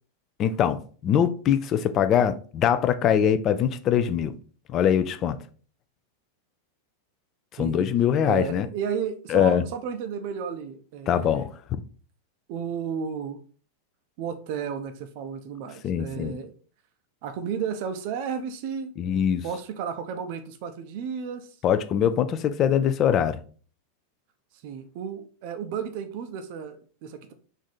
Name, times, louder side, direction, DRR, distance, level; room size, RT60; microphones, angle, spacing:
voice 1, 0.4-4.3 4.7-5.4 7.6-8.7 9.3-9.6 11.1-11.8 15.8-16.4 19.0-19.4 21.6-23.4, left 9 dB, 30° left, 0.3 m, -23 dB
voice 2, 7.6-7.9 8.2-11.5 12.5-13.4 14.2-16.5 17.2-18.9 19.4-21.5 24.6-27.3, right 7 dB, 45° right, 0.5 m, -33 dB
3.5 x 2.6 x 4.1 m
figure-of-eight pair, 90°, 0 cm